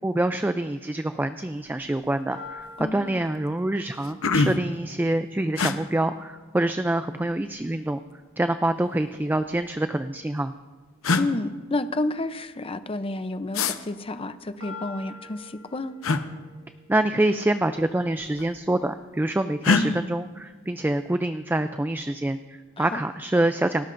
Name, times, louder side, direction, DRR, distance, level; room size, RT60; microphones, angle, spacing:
voice 1, 0.0-8.0 8.4-10.5 16.9-23.9, right 1 dB, 10° right, 9 dB, 0.3 m, -26 dB
sound 1, 1.8-2.1 2.5-2.9 3.5-3.6 3.9-4.8 5.6-5.8 7.0-7.7 8.8-9.7 10.6-10.7 11.0-11.3 13.5-13.8 16.0-16.2 17.6-17.8 18.1-18.7 19.6-19.9, left 4 dB, 80° left, 0.9 m, -25 dB
sound 2, 2.3-6.3 14.6-18.7, left 3 dB, 65° right, 4.9 m, -47 dB
voice 2, 2.8-3.2 11.2-15.9 19.7-20.0 22.8-23.0, left 2 dB, 25° left, 11 dB, 0.6 m, -30 dB
29.0 x 13.0 x 2.6 m, 1.4 s
head